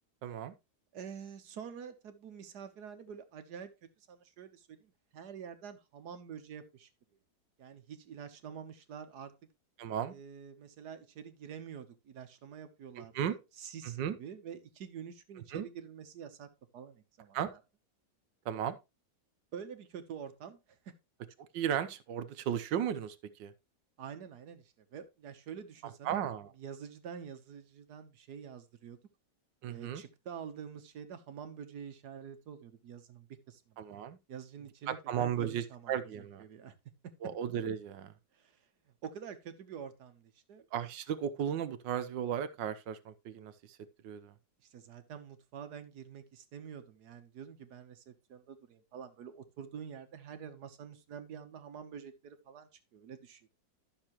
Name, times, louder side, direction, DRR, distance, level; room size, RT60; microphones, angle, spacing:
voice 1, 0.2-0.5 9.8-10.1 13.0-13.3 13.8-14.2 15.5-15.7 17.3-17.5 18.4-18.8 21.5-23.5 26.0-26.5 29.6-30.0 33.8-34.2 34.9-36.4 37.2-38.1 40.7-43.8 44.0-44.3, right 9 dB, 80° right, 1.4 m, -35 dB
voice 2, 0.9-6.9 7.6-9.3 10.1-16.5 16.7-17.6 19.5-20.9 24.0-26.2 26.6-29.0 29.7-33.8 34.3-35.9 36.4-36.7 38.3-38.7 39.0-40.6 44.6-53.5, right 7 dB, 65° right, 1.5 m, -47 dB
12.0 x 6.6 x 3.0 m
omnidirectional pair, 1.9 m